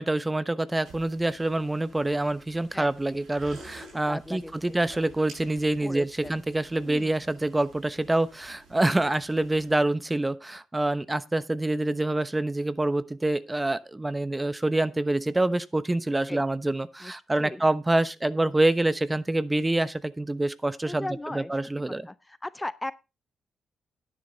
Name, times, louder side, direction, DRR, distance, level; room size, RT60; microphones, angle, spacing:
voice 1, 0.0-21.1 21.3-22.1, right 2 dB, 20° right, 0.9 m, -26 dB
sound 1, 0.8-9.7, right 3 dB, 75° right, 7.0 m, -51 dB
voice 2, 4.1-4.8 5.8-6.4 6.8-7.2 16.3-16.4 17.0-17.6 20.9-21.5 22.1-22.9, left 1 dB, 15° left, 0.6 m, -37 dB
10.5 x 9.8 x 4.0 m
supercardioid pair, 50°, 0 cm